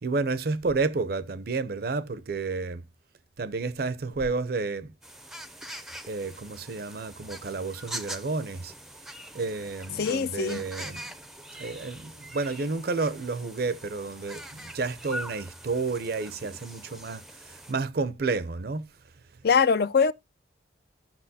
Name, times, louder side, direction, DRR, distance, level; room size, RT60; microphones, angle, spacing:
voice 1, 0.0-2.8 3.4-4.9 6.1-8.7 9.3-11.1 11.6-18.8, right 3 dB, 55° right, 0.5 m, -31 dB
sound 1, 5.0-17.7, equal, ahead, 0.5 m, -43 dB
voice 2, 10.0-10.6 19.4-20.1, left 6 dB, 55° left, 0.4 m, -22 dB
15.0 x 5.8 x 2.7 m
head